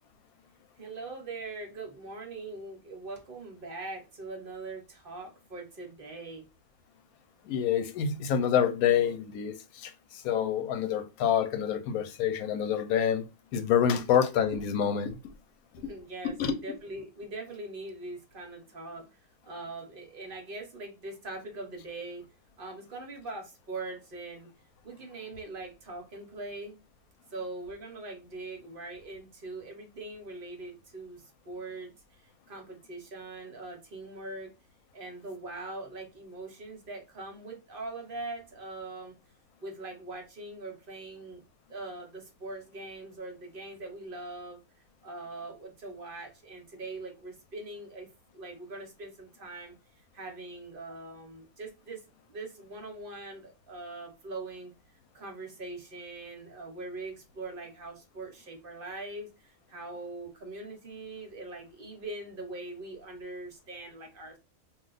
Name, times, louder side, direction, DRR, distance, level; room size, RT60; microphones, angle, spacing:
voice 1, 0.8-6.4 14.0-14.1 15.8-19.1 19.4-22.2 22.6-24.5 24.8-26.8 27.3-34.5 34.9-39.1 39.6-41.4 41.7-44.6 45.0-48.1 48.3-49.7 50.1-52.0 52.3-54.7 55.1-64.4, right 2 dB, 45° right, 0.9 m, -42 dB
voice 2, 7.4-13.3 13.5-15.2 16.2-16.5, left 8 dB, 85° left, 1.0 m, -27 dB
2.4 x 2.3 x 3.8 m
omnidirectional pair, 1.5 m